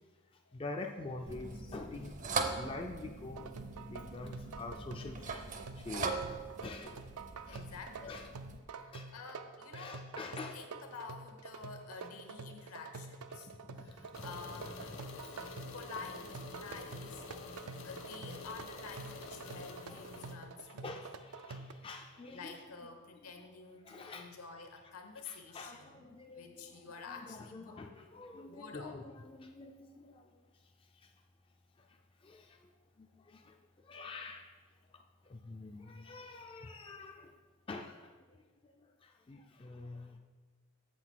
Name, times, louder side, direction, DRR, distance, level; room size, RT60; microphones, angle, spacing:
voice 1, 0.5-5.5 5.8-7.0 7.4-7.7 8.0-8.3 8.9-9.1 9.7-10.7 12.0-12.1 13.3-14.2 15.2-15.7 17.7-17.8 19.4-20.0 20.6-22.6 23.8-24.4 25.2-30.4 30.9-31.1 32.2-32.7 33.0-33.6 33.8-34.6 34.9-37.4 37.7-38.3 38.6-40.2, left 3 dB, 25° left, 3 dB, 0.3 m, -47 dB
sound 1, 1.3-8.6, right 4 dB, 35° right, 0.5 m, -41 dB
sound 2, 3.4-21.7, right 4 dB, 85° right, 0.5 m, -48 dB
voice 2, 7.5-8.2 8.8-15.0 15.7-20.9 22.3-27.7 28.5-29.0 29.8-30.1, left 4 dB, 80° left, 5 dB, 1.0 m, -50 dB
sound 3, 14.1-20.4, left 3 dB, 60° left, 0.7 m, -48 dB
7.5 x 5.8 x 4.6 m, 1.4 s
head